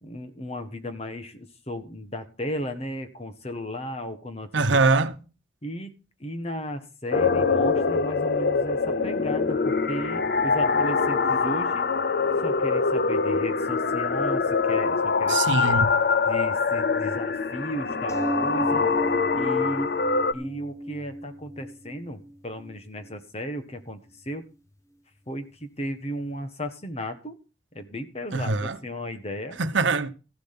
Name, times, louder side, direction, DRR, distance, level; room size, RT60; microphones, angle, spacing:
voice 1, 0.0-4.8 5.6-5.9 6.2-11.9 12.4-15.8 16.2-18.8 19.3-20.0 20.3-24.4 25.3-27.3 27.7-29.6, equal, 35° left, 1.5 m, -35 dB
voice 2, 4.5-5.2 15.3-15.9 28.3-28.8 29.6-30.1, right 3 dB, 85° right, 1.0 m, -23 dB
sound 1, 7.1-20.3, left 4 dB, 55° left, 0.6 m, -24 dB
sound 2, 18.1-23.1 23.8-23.9 24.2-24.3, right 1 dB, 15° left, 1.4 m, -34 dB
15.0 x 7.2 x 5.8 m
head